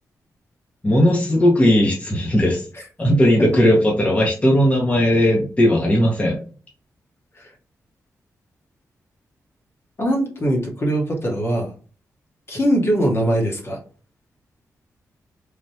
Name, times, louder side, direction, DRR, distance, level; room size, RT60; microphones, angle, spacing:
voice 1, 0.8-2.7 3.0-6.4, equal, 25° left, -2 dB, 0.7 m, -17 dB
voice 2, 10.0-11.7 12.5-13.8, right 1 dB, 45° left, 0 dB, 1.0 m, -21 dB
3.2 x 2.2 x 2.7 m, 0.38 s
cardioid pair, 75°, 6 cm